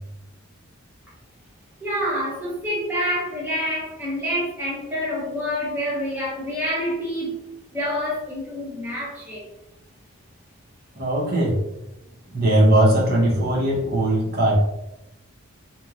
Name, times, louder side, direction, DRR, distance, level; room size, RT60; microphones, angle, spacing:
voice 1, 1.8-9.4, equal, 10° right, -7 dB, 0.7 m, -27 dB
voice 2, 11.0-11.6 12.3-14.6, right 1 dB, 45° right, -3 dB, 0.7 m, -19 dB
3.0 x 2.1 x 2.4 m, 0.92 s
head